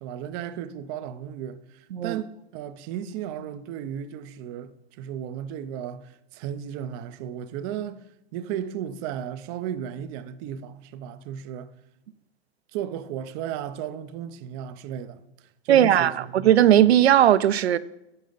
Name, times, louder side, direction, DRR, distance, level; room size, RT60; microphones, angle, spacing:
voice 1, 0.0-8.0 8.3-11.7 12.7-16.5, right 9 dB, 25° right, 0.3 m, -35 dB
voice 2, 1.9-2.2 15.7-17.8, right 11 dB, 85° right, 0.6 m, -18 dB
10.5 x 7.5 x 3.9 m
hypercardioid pair, 140°, 31 cm